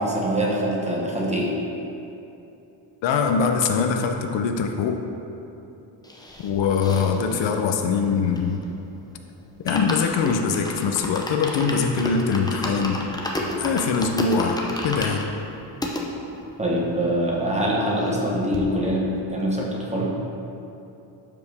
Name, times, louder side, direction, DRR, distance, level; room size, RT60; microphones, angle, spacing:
voice 1, 0.0-1.5 16.6-20.1, equal, 15° right, -4 dB, 1.0 m, -24 dB
voice 2, 3.0-5.0 6.4-8.6 9.6-13.0 13.6-15.3, left 5 dB, 70° left, 5 dB, 0.7 m, -23 dB
sound 1, 6.0-8.8 9.1-9.2 9.5-16.0 16.6-16.7 16.9-17.0 17.3-18.3 18.5-18.6, left 1 dB, 10° left, 0.5 m, -31 dB
11.5 x 5.2 x 3.4 m, 2.9 s
cardioid pair, 170°, 46 cm